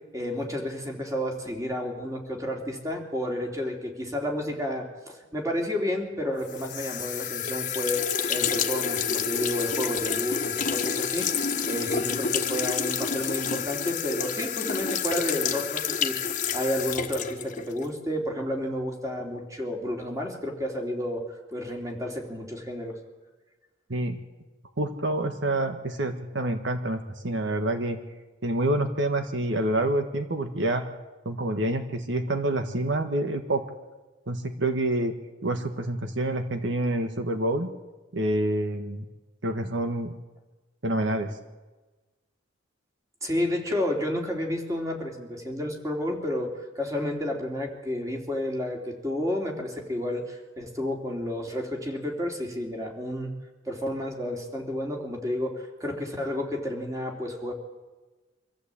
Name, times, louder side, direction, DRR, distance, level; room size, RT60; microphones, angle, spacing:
voice 1, 0.1-11.3 11.7-16.2 16.5-21.2 21.5-23.0 43.2-53.3 53.7-57.5, left 1 dB, 15° right, 1 dB, 3.2 m, -31 dB
sound 1, 6.5-17.9, left 7 dB, 40° left, 1.4 m, -29 dB
voice 2, 24.8-28.0 28.4-30.9 31.2-33.6 34.3-35.1 35.4-37.7 38.1-39.0 39.4-40.1 40.8-41.3, right 1 dB, 70° right, 7 dB, 1.5 m, -27 dB
24.5 x 14.5 x 8.5 m, 1.2 s
head